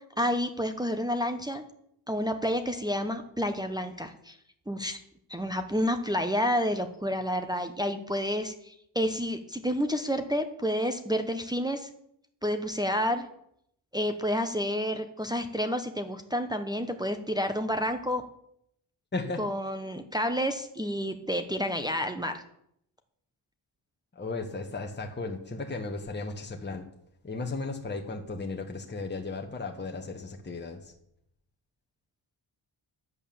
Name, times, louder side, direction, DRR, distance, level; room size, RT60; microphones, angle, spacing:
voice 1, 0.2-1.6 2.1-4.4 4.7-5.0 5.3-11.9 12.4-13.3 13.9-18.2 19.4-22.4, equal, 10° right, 5 dB, 0.9 m, -29 dB
voice 2, 19.1-19.4 24.1-26.9 27.2-30.9, left 3 dB, 20° left, 3 dB, 1.4 m, -35 dB
11.0 x 8.2 x 7.1 m, 0.74 s
wide cardioid pair, 120°, 49 cm